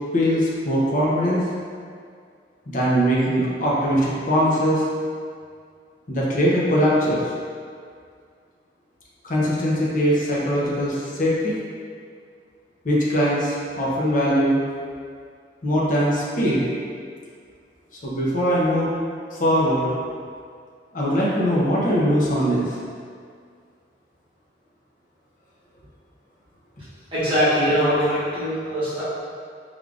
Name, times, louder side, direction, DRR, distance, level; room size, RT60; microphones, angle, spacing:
voice 1, 0.1-1.4 2.7-4.9 6.1-7.2 9.2-11.5 12.8-14.6 15.6-16.7 18.0-18.9 19.4-19.9 20.9-22.7, equal, 45° left, -6 dB, 0.8 m, -21 dB
voice 2, 27.1-29.0, equal, 30° right, -13 dB, 1.3 m, -21 dB
4.8 x 3.5 x 2.4 m, 2.1 s
head